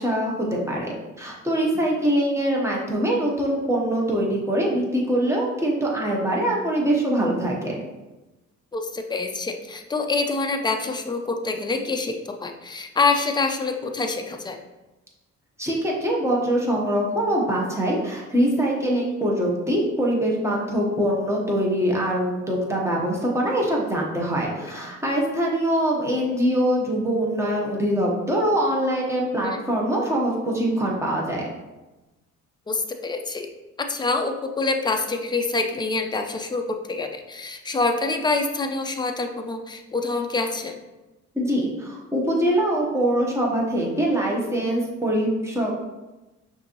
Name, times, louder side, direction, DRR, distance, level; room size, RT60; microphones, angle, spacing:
voice 1, 0.0-7.7 15.6-31.5 41.3-45.8, right 1 dB, 10° right, -3 dB, 1.1 m, -23 dB
voice 2, 8.7-14.6 24.6-24.7 29.4-29.6 32.7-33.5 33.8-40.8, left 3 dB, 15° left, 4 dB, 0.5 m, -26 dB
5.6 x 2.7 x 3.0 m, 1.1 s
cardioid pair, 90°, 30 cm